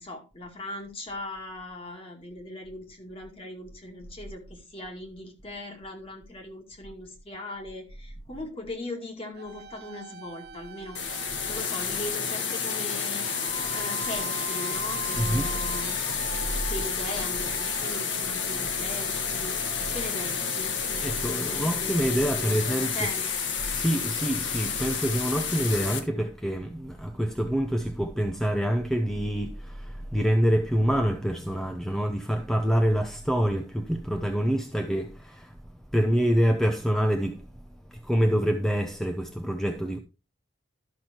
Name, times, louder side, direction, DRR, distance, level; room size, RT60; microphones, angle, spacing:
voice 1, 0.0-13.3 13.7-16.0 16.7-19.6 19.9-23.3, left 1 dB, 30° left, 2.3 m, -39 dB
sound 1, 9.4-22.2, right 5 dB, 55° right, 0.8 m, -42 dB
sound 2, 10.9-26.0, left 6 dB, 75° left, 1.5 m, -30 dB
voice 2, 15.2-15.5 21.0-23.1 23.7-35.6 35.9-37.4 37.9-40.0, equal, 5° left, 0.7 m, -26 dB
12.0 x 6.1 x 4.3 m
head